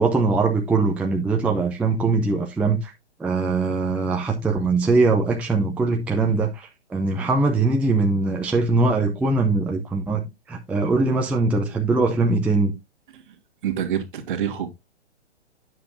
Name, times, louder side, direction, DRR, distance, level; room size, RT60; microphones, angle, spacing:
voice 1, 0.0-2.9 3.2-12.7, right 3 dB, 5° right, 0.6 m, -21 dB
voice 2, 13.6-14.7, right 9 dB, 45° right, 1.8 m, -26 dB
9.5 x 7.3 x 2.6 m
figure-of-eight pair, 125°, 35 cm